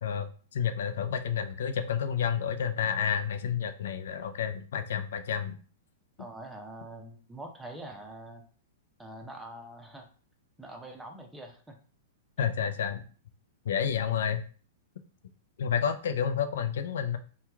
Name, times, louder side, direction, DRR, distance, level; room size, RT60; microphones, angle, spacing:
voice 1, 0.0-5.6 12.4-13.0 13.7-14.4 15.6-17.2, left 8 dB, 75° left, 9 dB, 0.4 m, -30 dB
voice 2, 6.2-8.4 9.0-10.1 10.6-11.8 12.4-12.5, right 1 dB, 5° right, 3 dB, 0.7 m, -44 dB
2.9 x 2.2 x 3.4 m, 0.40 s
hypercardioid pair, 125°, 0 cm